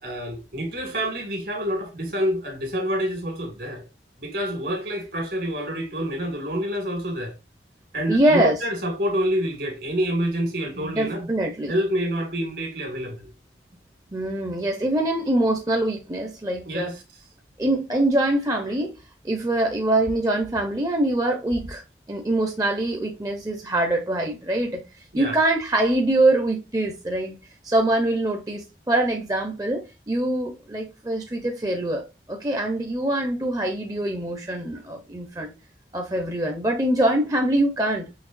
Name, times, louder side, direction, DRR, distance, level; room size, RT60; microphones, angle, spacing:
voice 1, 0.0-3.8 4.2-7.3 7.9-11.3 11.7-13.3 16.7-17.0 25.1-25.4, equal, 65° right, 2.0 m, -27 dB
voice 2, 8.1-8.6 10.8-11.7 14.1-16.9 17.6-18.9 19.2-21.8 22.1-24.8 25.1-27.4 27.6-32.0 32.3-35.5 35.9-38.1, right 1 dB, 20° right, 0.6 m, -24 dB
5.9 x 3.3 x 2.5 m
head